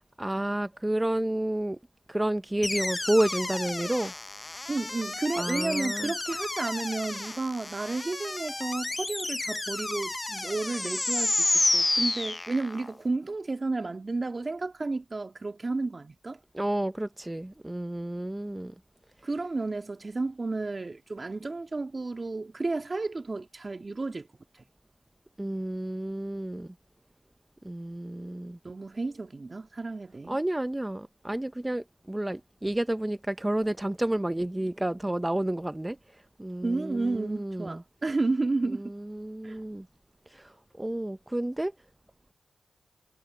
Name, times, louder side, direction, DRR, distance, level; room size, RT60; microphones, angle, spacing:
voice 1, 0.2-1.8 2.1-4.1 5.4-6.1 16.5-18.7 25.4-26.7 27.6-28.6 30.3-37.8 39.1-39.9 40.3-41.7, right 1 dB, 15° right, 0.7 m, -30 dB
sound 1, 2.6-12.9, left 2 dB, 30° left, 0.8 m, -31 dB
voice 2, 4.7-16.4 19.2-24.3 28.6-30.4 36.6-38.9 39.4-39.6, right 3 dB, 40° right, 2.3 m, -32 dB
cardioid pair, 45°, 0 cm